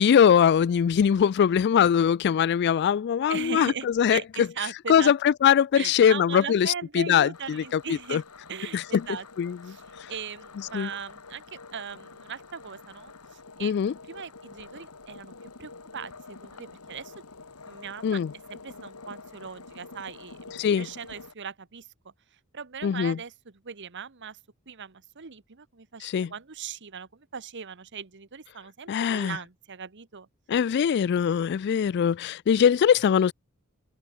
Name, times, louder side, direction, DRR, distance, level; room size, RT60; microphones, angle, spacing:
voice 1, 0.0-4.5 4.9-8.2 8.7-9.1 9.4-9.8 10.7-10.9 13.6-13.9 18.0-18.3 20.6-20.9 22.8-23.2 26.0-26.3 28.9-29.4 30.5-33.3, left 8 dB, 50° left, 0.3 m, -22 dB
voice 2, 3.3-5.1 5.7-8.2 8.5-9.2 9.6-9.8 10.1-13.7 14.0-15.3 15.6-17.1 17.7-18.2 18.5-21.9 22.5-23.3 23.6-24.4 24.7-30.3, right 7 dB, 55° right, 1.1 m, -39 dB
sound 1, 7.3-21.3, left 4 dB, 90° left, 2.2 m, -47 dB
head